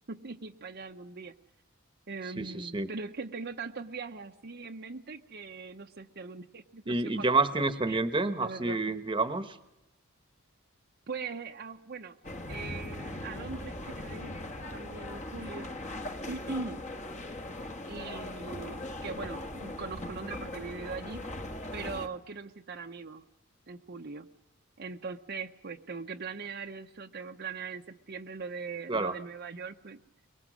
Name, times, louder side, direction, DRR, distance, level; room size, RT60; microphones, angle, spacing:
voice 1, 0.1-1.3 2.1-7.3 7.9-8.0 8.4-8.8 11.1-12.2 12.5-14.3 14.7-15.7 16.3-16.8 17.9-21.2 21.7-23.2 23.7-24.3 24.8-30.0, right 4 dB, 50° right, 4 dB, 0.8 m, -40 dB
voice 2, 2.4-2.9 6.9-9.6 28.9-29.1, right 3 dB, 25° right, 9 dB, 1.1 m, -29 dB
sound 1, 12.2-22.1, left 1 dB, 35° left, 1.5 m, -40 dB
24.0 x 23.0 x 6.2 m, 0.90 s
head